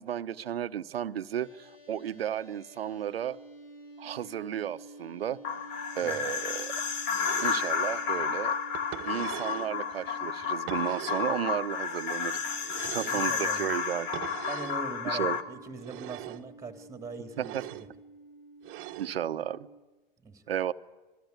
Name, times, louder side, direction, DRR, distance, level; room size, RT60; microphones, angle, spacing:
voice 1, 0.0-3.4 4.0-5.4 5.9-6.7 7.4-8.5 9.0-12.4 12.9-14.3 15.0-15.4 17.4-17.6 19.0-19.7 20.5-20.7, right 10 dB, 80° right, 12 dB, 1.1 m, -33 dB
sound 1, 1.4-19.8, right 2 dB, 80° left, 5.7 m, -51 dB
sound 2, 5.4-15.4, left 6 dB, 40° left, 2.2 m, -32 dB
sound 3, 7.1-7.8 8.7-9.7 10.7-11.4 12.6-13.3 14.1-14.8 15.8-16.5 17.3-17.9 18.6-19.2, right 16 dB, 40° right, 1.5 m, -42 dB
voice 2, 13.1-13.7 14.5-17.9 20.2-20.4, right 3 dB, 10° right, 7 dB, 3.0 m, -41 dB
27.0 x 21.0 x 8.3 m, 1.2 s
hypercardioid pair, 100°, 29 cm